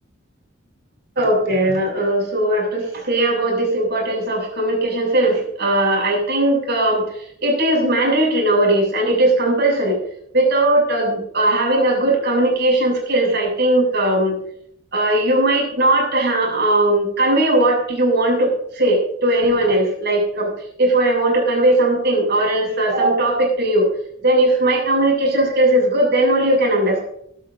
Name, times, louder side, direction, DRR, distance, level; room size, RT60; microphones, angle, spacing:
voice 1, 1.2-7.0 7.4-10.0 10.3-14.4 14.9-18.5 18.8-20.5 20.8-23.9 24.2-27.0, right 1 dB, 55° right, 0 dB, 7.0 m, -18 dB
23.0 x 12.0 x 2.7 m, 0.68 s
head